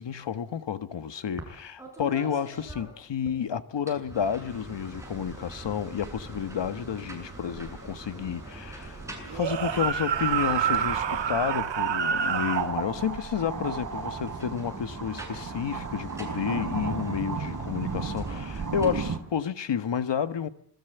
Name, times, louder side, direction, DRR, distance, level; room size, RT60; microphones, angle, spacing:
voice 1, 0.0-9.0 9.3-20.5, left 8 dB, 80° left, 1.7 m, -31 dB
sound 1, 1.4-1.5 1.8-3.4 3.8-11.8 13.6-18.8, right 1 dB, 5° right, 7.8 m, -43 dB
sound 2, 4.5-19.2, right 5 dB, 45° right, 4.6 m, -36 dB
sound 3, 9.3-12.7, right 9 dB, 85° right, 1.5 m, -27 dB
27.0 x 21.0 x 8.1 m
wide cardioid pair, 140°, 43 cm